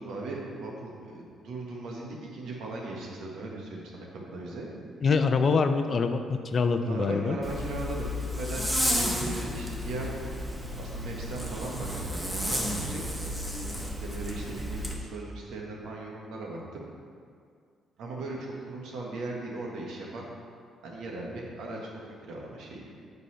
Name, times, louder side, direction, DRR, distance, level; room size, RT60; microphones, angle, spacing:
voice 1, 0.0-4.7 6.8-13.0 14.0-16.8 18.0-20.3 20.8-21.8 22.0-22.9, right 2 dB, 80° right, -2 dB, 1.4 m, -38 dB
voice 2, 5.0-7.4, left 4 dB, 45° left, 8 dB, 0.5 m, -25 dB
Zipper (clothing), 7.4-14.9, equal, 5° right, 1.2 m, -32 dB
8.1 x 4.1 x 5.6 m, 2.2 s
cardioid pair, 90°, 0 cm